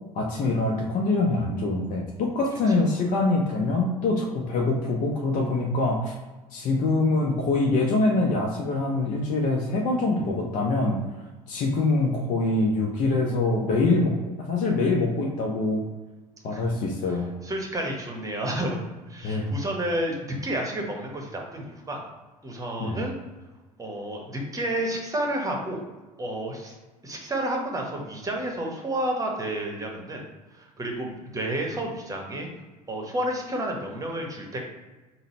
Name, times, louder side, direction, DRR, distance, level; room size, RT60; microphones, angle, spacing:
voice 1, 0.1-6.1 6.5-11.0 11.5-15.8 16.4-17.3 19.2-19.5 22.8-23.0, left 2 dB, 45° left, -1 dB, 0.7 m, -24 dB
voice 2, 17.4-22.1 22.4-23.1 23.8-25.8 26.2-26.8 27.0-30.2 30.5-32.5 32.9-34.6, right 1 dB, 15° right, 1 dB, 1.0 m, -30 dB
3.8 x 2.1 x 4.2 m, 1.2 s
figure-of-eight pair, 65°, 19 cm